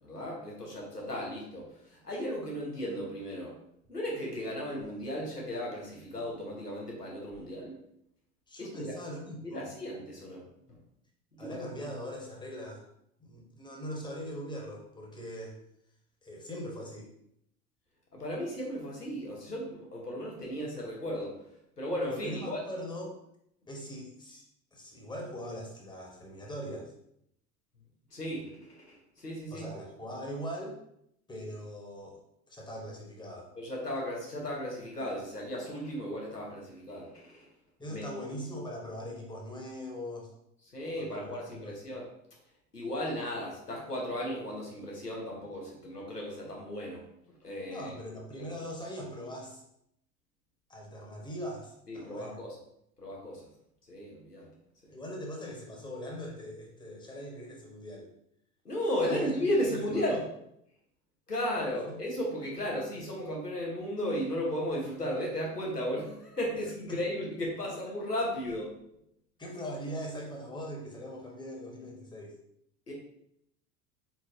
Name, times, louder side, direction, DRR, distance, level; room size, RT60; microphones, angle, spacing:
voice 1, 0.0-3.5 3.9-7.7 8.6-8.9 9.4-10.4 10.7-10.8 11.3-11.6 18.1-21.4 21.8-22.6 28.1-29.7 33.6-37.5 37.8-38.1 40.7-42.1 42.7-47.1 47.4-47.9 48.4-48.5 51.9-52.5 53.0-53.5 53.9-54.5 54.8-54.9 58.6-60.2 61.3-68.8 72.9-73.0, equal, 90° left, -2 dB, 1.2 m, -35 dB
voice 2, 8.5-9.7 11.4-12.9 13.2-15.6 16.2-17.1 22.1-23.2 23.7-24.4 24.7-26.9 29.5-30.8 31.3-32.2 32.5-33.5 37.8-40.3 41.0-41.8 47.7-49.6 50.7-52.4 54.9-58.1 59.0-60.2 61.8-62.0 66.9-67.0 69.4-72.3, equal, 10° left, -1 dB, 1.1 m, -41 dB
4.4 x 4.3 x 2.7 m, 0.75 s
figure-of-eight pair, 75°, 46 cm